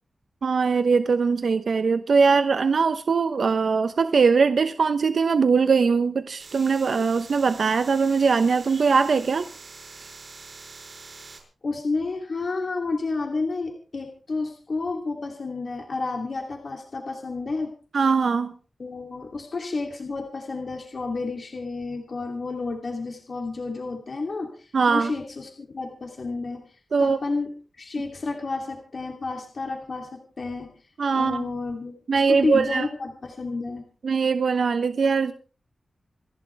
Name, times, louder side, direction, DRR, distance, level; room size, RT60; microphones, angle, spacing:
voice 1, 0.4-9.5 17.9-18.5 24.7-25.1 26.9-27.2 31.0-31.5 32.1-32.9 34.0-35.3, right 5 dB, 75° right, 10 dB, 0.9 m, -21 dB
Brain Surgery, 6.4-11.4, right 3 dB, 55° right, 6.7 m, -45 dB
voice 2, 11.6-17.7 18.8-26.6 27.0-27.5 27.8-30.7 31.1-33.9, left 3 dB, 55° left, 2 dB, 2.9 m, -31 dB
28.0 x 11.5 x 3.4 m, 0.38 s
wide cardioid pair, 95°, 0 cm